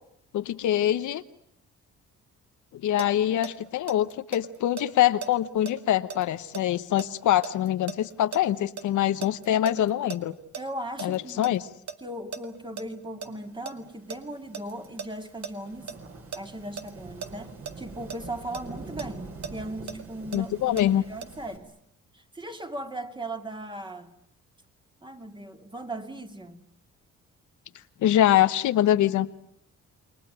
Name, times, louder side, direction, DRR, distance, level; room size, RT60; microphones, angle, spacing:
voice 1, 0.3-1.2 2.7-10.3 11.0-11.7 20.3-21.0 28.0-29.3, left 12 dB, 75° left, 11 dB, 1.1 m, -24 dB
sound 1, 3.0-8.8 9.2-11.6 11.9-12.0 12.3-12.8 13.2-16.4 16.8-16.9 17.2-17.3 17.7-17.8 18.1-20.8 21.2-21.3, right 6 dB, 65° right, 1.9 m, -38 dB
voice 2, 10.5-11.5 12.0-15.9 16.3-21.7 22.1-24.1 25.0-26.6, right 1 dB, 15° right, 6 dB, 2.5 m, -38 dB
Thunderstorm / Rain, 13.9-21.6, right 3 dB, 45° right, 5.5 m, -45 dB
29.0 x 20.5 x 9.1 m, 0.72 s
cardioid pair, 90°, 30 cm